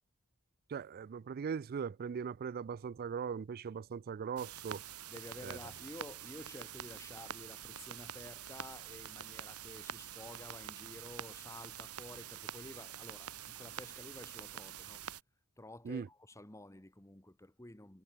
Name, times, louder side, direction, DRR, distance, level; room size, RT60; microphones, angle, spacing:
voice 1, 0.7-4.8 5.4-5.6 15.8-16.1, right 6 dB, 45° right, 0.3 m, -40 dB
sound 1, 4.4-15.2, right 8 dB, 80° right, 4.1 m, -46 dB
voice 2, 5.1-15.0 15.6-18.0, left 1 dB, 15° left, 1.8 m, -51 dB
head